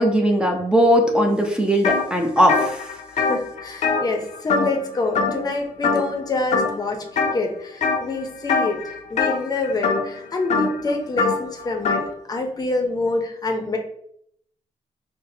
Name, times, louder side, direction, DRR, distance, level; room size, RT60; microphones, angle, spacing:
voice 1, 0.0-2.9, equal, 5° right, 2 dB, 0.6 m, -19 dB
sound 1, 1.8-2.0 2.4-4.9 5.1-5.5 5.8-6.2 6.5-7.3 7.8-8.1 8.4-12.1, left 4 dB, 70° left, 0.5 m, -23 dB
voice 2, 3.2-12.0 12.3-13.8, left 2 dB, 30° left, 3 dB, 0.7 m, -26 dB
5.5 x 2.1 x 2.7 m, 0.70 s
cardioid pair, 115°, 12 cm